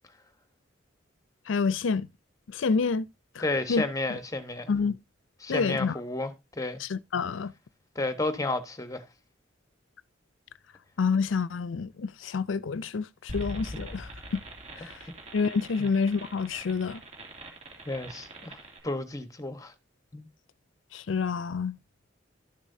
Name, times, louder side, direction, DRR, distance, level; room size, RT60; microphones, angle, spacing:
voice 1, 1.5-2.1 2.5-3.1 3.4-3.5 3.7-3.8 4.7-5.0 5.5-6.0 6.8-7.5 11.0-14.4 14.8-14.9 15.3-17.0 20.9-21.8, left 5 dB, 80° left, 0.5 m, -28 dB
voice 2, 3.4-4.7 5.4-6.8 7.9-9.0 15.8-15.9 17.9-19.7 20.1-20.3, left 2 dB, 20° left, 1.1 m, -32 dB
sound 1, 13.3-18.8, equal, 35° right, 2.7 m, -42 dB
12.5 x 7.2 x 2.7 m
head